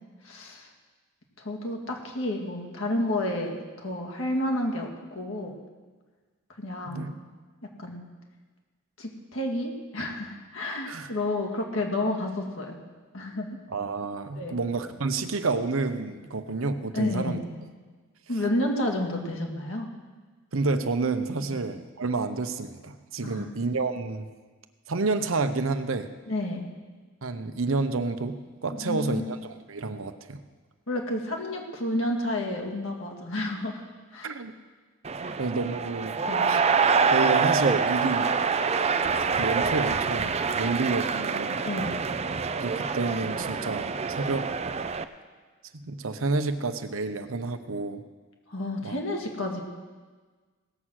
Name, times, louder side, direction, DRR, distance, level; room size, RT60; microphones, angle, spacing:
voice 1, 0.2-0.7 1.4-5.6 6.6-7.1 7.6-8.0 9.0-12.8 13.1-13.6 14.4-14.6 16.9-17.5 18.3-19.9 21.5-21.6 23.2-23.5 26.3-26.7 28.8-29.3 30.9-33.8 34.1-34.3 35.2-35.4 36.3-36.5 41.6-42.0 48.5-49.6, left 1 dB, 70° left, 1 dB, 2.2 m, -30 dB
voice 2, 13.7-17.4 20.5-24.3 24.9-26.1 27.2-30.4 34.2-34.5 35.4-36.6 37.1-38.3 39.2-41.6 42.6-44.5 45.7-48.0 48.8-49.0, right 3 dB, 80° right, 9 dB, 0.8 m, -29 dB
sound 1, 35.0-45.0, right 5 dB, 30° right, 0.5 m, -26 dB
17.5 x 7.5 x 6.4 m, 1.4 s
head